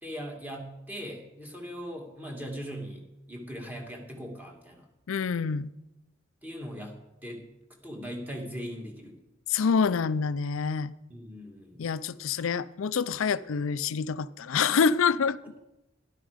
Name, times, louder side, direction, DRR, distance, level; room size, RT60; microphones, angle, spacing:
voice 1, 0.0-4.9 6.4-7.4 7.8-9.2 11.1-11.9, equal, 10° right, 2.0 m, -40 dB
voice 2, 5.1-5.7 9.5-10.9 11.8-15.4, left 6 dB, 80° left, 0.5 m, -26 dB
12.5 x 11.5 x 5.0 m
head